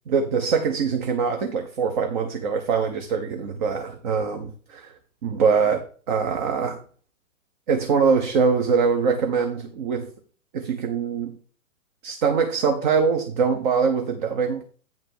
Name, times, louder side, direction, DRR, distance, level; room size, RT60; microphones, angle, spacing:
voice 1, 0.1-4.9 5.2-6.8 7.7-10.1 10.5-11.4 12.0-14.6, right 5 dB, 35° right, 1.0 m, -23 dB
10.0 x 3.6 x 7.1 m
figure-of-eight pair, 120°, 41 cm